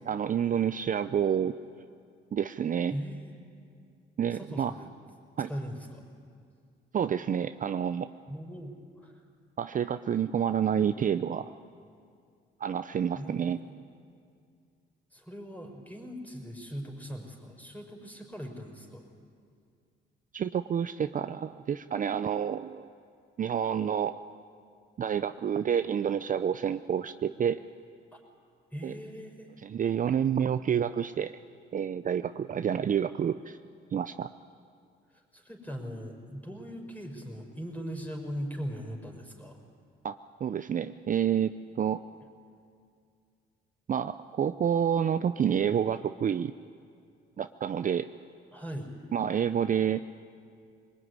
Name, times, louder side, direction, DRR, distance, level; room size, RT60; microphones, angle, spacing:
voice 1, 0.0-1.5 2.3-2.9 4.2-4.7 5.4-5.5 6.9-8.1 9.6-11.5 12.6-13.6 20.3-22.9 23.4-24.2 25.0-27.6 28.8-28.9 29.6-31.3 31.7-33.6 33.9-34.3 40.0-42.0 43.9-46.5 47.4-48.1 49.1-50.0, right 8 dB, 40° right, 11 dB, 0.6 m, -29 dB
voice 2, 2.9-3.4 4.3-4.9 5.5-6.0 8.3-9.2 13.1-13.7 15.1-19.0 28.1-28.2 28.7-29.5 35.3-39.6 48.5-48.9, equal, 10° left, 2 dB, 5.1 m, -40 dB
23.0 x 20.0 x 9.7 m, 2.3 s
cardioid pair, 90°, 20 cm